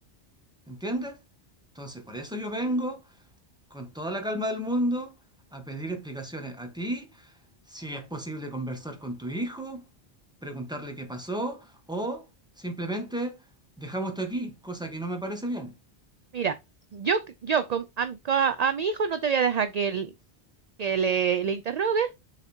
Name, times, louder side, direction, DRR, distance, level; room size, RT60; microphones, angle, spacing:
voice 1, 0.7-1.2 1.7-3.0 3.7-5.1 5.5-7.3 7.7-9.8 10.4-12.2 12.6-13.4 13.8-15.7, right 1 dB, 5° right, 1.5 m, -32 dB
voice 2, 16.9-20.1 20.8-22.1, right 6 dB, 50° right, 0.5 m, -26 dB
7.1 x 4.1 x 4.4 m
omnidirectional pair, 1.1 m